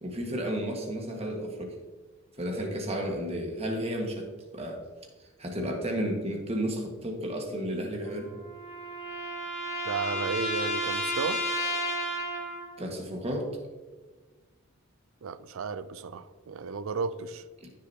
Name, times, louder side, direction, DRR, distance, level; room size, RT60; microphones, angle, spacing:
voice 1, 0.0-1.7 2.4-4.9 5.4-8.3 12.8-13.5 17.6-17.7, equal, 30° right, 1.7 m, -32 dB
sound 1, 8.1-12.8, equal, 30° left, 1.5 m, -32 dB
voice 2, 9.8-11.4 15.2-17.4, right 5 dB, 65° right, 0.4 m, -33 dB
15.0 x 6.6 x 2.9 m
head